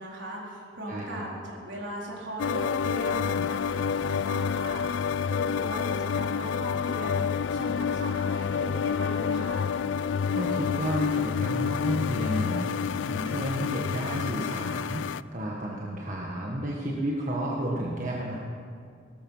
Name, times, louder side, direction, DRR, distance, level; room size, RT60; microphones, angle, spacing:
voice 1, 0.0-7.2 7.5-9.7, right 1 dB, 70° right, -3 dB, 4.0 m, -38 dB
voice 2, 0.9-1.2 10.3-18.4, right 1 dB, 40° right, -3 dB, 1.6 m, -32 dB
sound 1, 2.4-15.2, left 6 dB, 70° left, 0.3 m, -28 dB
18.0 x 13.5 x 5.6 m, 2.3 s
head